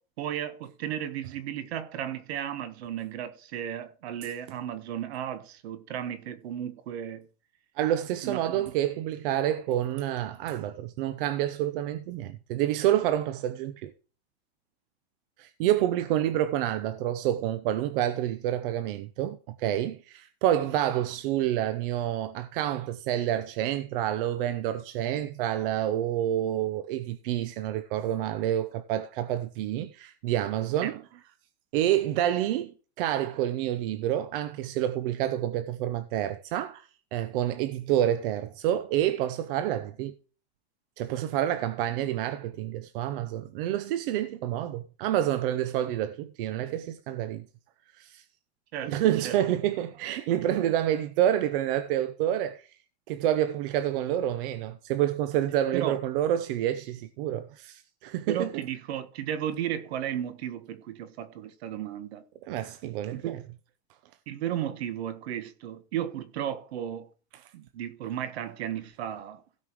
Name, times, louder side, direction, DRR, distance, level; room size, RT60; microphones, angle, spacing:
voice 1, 0.2-7.2 8.2-8.6 30.8-30.9 41.9-42.1 48.7-49.0 49.2-49.4 55.7-55.9 58.3-62.2 63.1-63.4 64.3-67.1 67.5-69.4, right 10 dB, 70° right, 1.6 m, -34 dB
voice 2, 7.8-13.9 15.4-31.0 31.7-40.1 41.0-47.4 47.9-48.2 48.8-52.8 53.1-58.6 62.4-63.4 67.3-67.4, right 12 dB, 55° right, 0.8 m, -28 dB
16.5 x 5.4 x 4.8 m
supercardioid pair, 155°, 33 cm